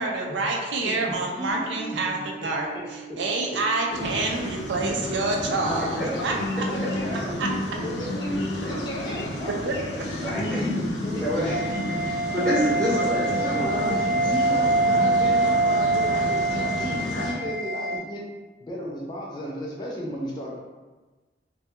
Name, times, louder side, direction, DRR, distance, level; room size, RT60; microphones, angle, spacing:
voice 1, 0.0-6.6 7.4-7.5 9.6-10.0, right 3 dB, 90° right, 0 dB, 0.4 m, -28 dB
voice 2, 0.8-1.5 2.1-2.2 3.1-3.2 6.6-7.4 7.8-8.4 8.6-9.6 10.3-11.2 12.4-12.5 13.4-18.2 18.6-20.6, equal, 25° left, -4 dB, 0.4 m, -34 dB
sound 1, 1.7-11.7, right 9 dB, 30° right, 0.5 m, -43 dB
sound 2, 3.9-17.3, left 1 dB, 85° left, 0.5 m, -31 dB
voice 3, 5.8-6.1 7.7-7.8 10.2-10.6 11.1-13.9, equal, 5° left, -9 dB, 0.7 m, -28 dB
sound 3, 11.5-18.0, right 2 dB, 60° right, 0.7 m, -24 dB
2.2 x 2.2 x 2.8 m, 1.3 s
head